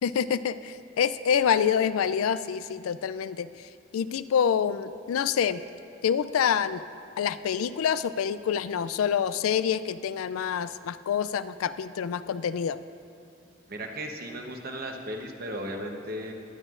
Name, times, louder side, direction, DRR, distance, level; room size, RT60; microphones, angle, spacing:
voice 1, 0.0-3.5 3.9-5.6 6.0-6.8 7.2-12.8, left 8 dB, 85° left, 14 dB, 0.3 m, -27 dB
voice 2, 13.7-16.3, equal, 45° right, 3 dB, 1.0 m, -36 dB
18.5 x 11.0 x 2.5 m, 2.5 s
head